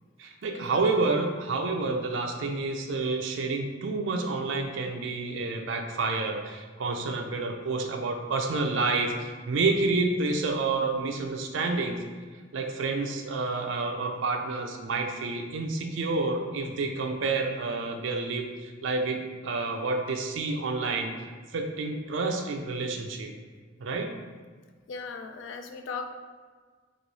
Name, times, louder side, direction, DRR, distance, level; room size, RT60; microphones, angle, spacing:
voice 1, 0.2-12.0 12.5-21.1 21.5-23.3 23.8-24.1, right 3 dB, 70° right, 3 dB, 0.4 m, -29 dB
voice 2, 24.9-26.1, left 4 dB, 70° left, 6 dB, 0.3 m, -38 dB
3.1 x 2.6 x 4.0 m, 1.5 s
head